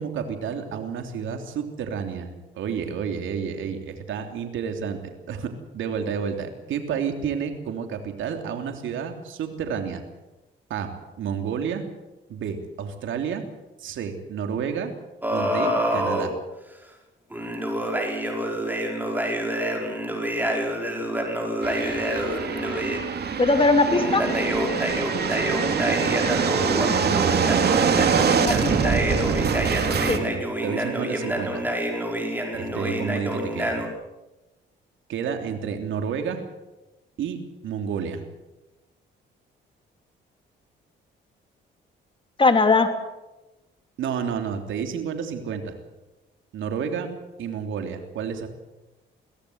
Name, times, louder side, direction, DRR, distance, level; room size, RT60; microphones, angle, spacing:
voice 1, 0.0-10.0 10.7-10.9 11.2-11.8 12.3-13.4 13.8-14.9 15.3-16.3 25.3-26.4 29.7-31.6 32.5-33.8 35.1-36.4 37.2-37.4 37.6-38.2 44.0-45.7 46.5-47.1 47.4-48.5, right 7 dB, 75° right, 5 dB, 3.3 m, -30 dB
sound 1, 15.2-16.3 17.3-23.0 23.9-33.9, equal, 10° right, 5.3 m, -27 dB
sound 2, 21.6-30.2, right 6 dB, 55° right, 2.6 m, -24 dB
voice 2, 23.4-24.2 28.4-28.9 30.1-30.2 42.4-42.9, left 3 dB, 25° left, 6 dB, 2.9 m, -19 dB
23.5 x 16.5 x 8.1 m, 1.0 s
cardioid pair, 90°, 20 cm